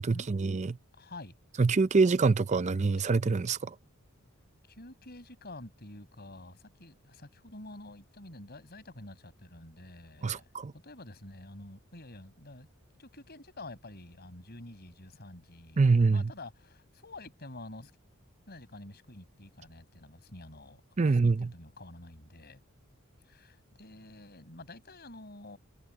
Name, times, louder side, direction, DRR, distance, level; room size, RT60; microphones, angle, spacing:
voice 1, 0.0-0.8 1.6-3.7 10.2-10.7 15.8-16.2 21.0-21.5, right 4 dB, 35° right, 0.5 m, -25 dB
voice 2, 0.9-1.3 4.6-10.5 10.7-12.7 13.0-17.9 18.5-22.6 23.2-25.6, left 2 dB, 50° left, 6.0 m, -48 dB
head